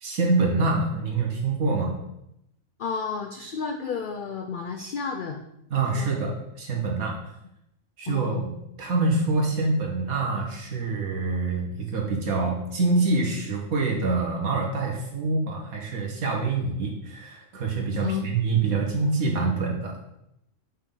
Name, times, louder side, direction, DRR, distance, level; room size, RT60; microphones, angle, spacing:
voice 1, 0.0-1.9 5.7-7.2 8.0-20.0, right 3 dB, 90° right, -1 dB, 1.8 m, -26 dB
voice 2, 2.8-5.4 5.9-6.1 8.1-8.5 18.0-18.3, left 5 dB, 75° left, 4 dB, 0.4 m, -32 dB
5.8 x 5.4 x 3.9 m, 0.83 s
omnidirectional pair, 1.4 m